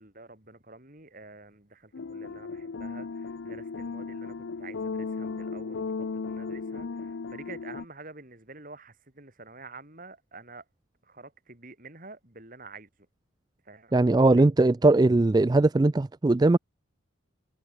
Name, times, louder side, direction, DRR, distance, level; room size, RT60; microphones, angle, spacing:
voice 1, 0.0-10.6 11.1-12.9 13.7-14.5, right 3 dB, 40° right, 3.5 m, -48 dB
sound 1, 1.9-7.9, left 4 dB, 70° left, 0.5 m, -36 dB
voice 2, 13.9-16.6, right 2 dB, 20° right, 0.3 m, -20 dB
head